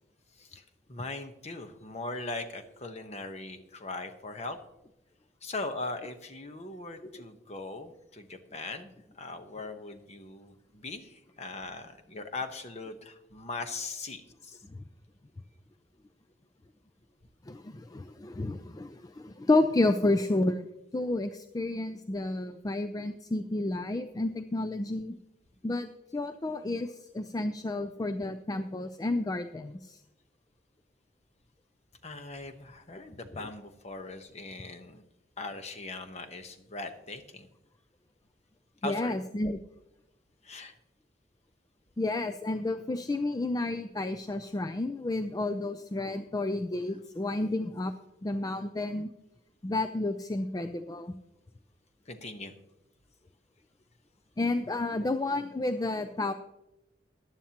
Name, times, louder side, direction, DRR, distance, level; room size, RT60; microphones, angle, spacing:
voice 1, 0.4-4.6 5.4-14.6 32.0-35.0 35.4-37.5 38.8-39.1 40.4-40.7 52.1-52.5, left 3 dB, 40° left, 7 dB, 1.0 m, -40 dB
voice 2, 17.5-20.7 20.9-25.1 25.6-30.0 38.8-39.6 42.0-47.9 48.2-49.1 49.6-51.1 54.4-56.3, left 2 dB, 20° left, 8 dB, 0.4 m, -31 dB
14.5 x 11.0 x 2.9 m, 0.92 s
head